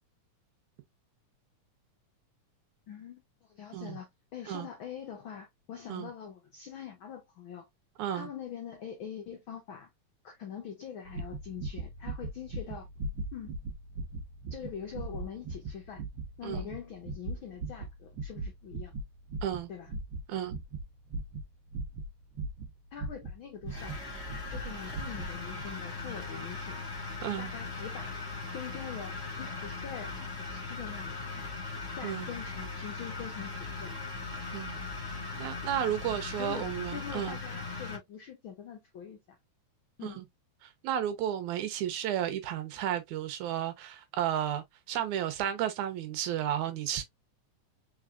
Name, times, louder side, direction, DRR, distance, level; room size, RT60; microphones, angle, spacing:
voice 1, 2.9-7.7 8.1-9.9 10.2-12.9 13.3-13.5 14.5-16.0 16.4-18.9 19.7-19.9 22.9-26.8 27.4-28.2 28.5-31.5 32.0-34.0 36.4-39.2 40.0-40.2, left 8 dB, 80° left, 1.1 m, -44 dB
voice 2, 8.0-8.3 16.4-16.7 19.4-19.7 20.3-20.6 27.2-27.5 32.0-32.3 34.5-34.8 35.4-37.4 40.0-40.3 40.8-47.0, right 10 dB, 75° right, 2.2 m, -33 dB
sound 1, 11.1-24.0 24.3-24.6 24.9-25.3 25.6-25.7, right 2 dB, 50° right, 1.5 m, -39 dB
sound 2, 23.7-38.0, left 3 dB, 10° left, 1.4 m, -39 dB
4.7 x 4.1 x 2.3 m
omnidirectional pair, 3.5 m